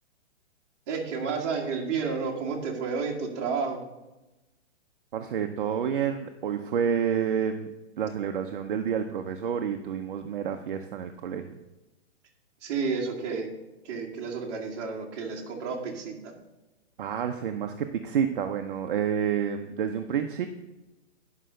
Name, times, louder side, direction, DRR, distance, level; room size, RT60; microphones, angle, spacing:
voice 1, 0.9-3.8 12.6-13.5 13.8-16.3, right 5 dB, 25° right, -1 dB, 1.6 m, -31 dB
voice 2, 5.1-11.6 17.0-20.5, right 8 dB, 45° right, 5 dB, 0.7 m, -29 dB
9.9 x 5.6 x 6.4 m, 1.0 s
hypercardioid pair, 170°, 35 cm